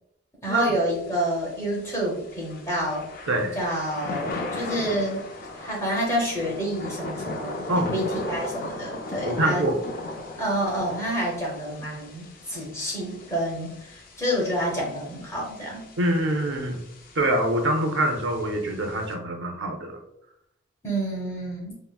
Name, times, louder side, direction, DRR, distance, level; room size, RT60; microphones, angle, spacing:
voice 1, 0.4-3.1 3.5-5.2 5.5-9.7 10.4-15.9 20.8-21.8, equal, 15° left, -3 dB, 0.7 m, -28 dB
Thunder / Rain, 0.9-19.1, left 2 dB, 45° left, 0.4 m, -38 dB
voice 2, 3.3-3.6 7.7-7.9 9.3-9.8 16.0-16.8 17.2-20.0, right 1 dB, 70° right, 2 dB, 0.5 m, -25 dB
3.6 x 2.0 x 2.2 m, 0.76 s
head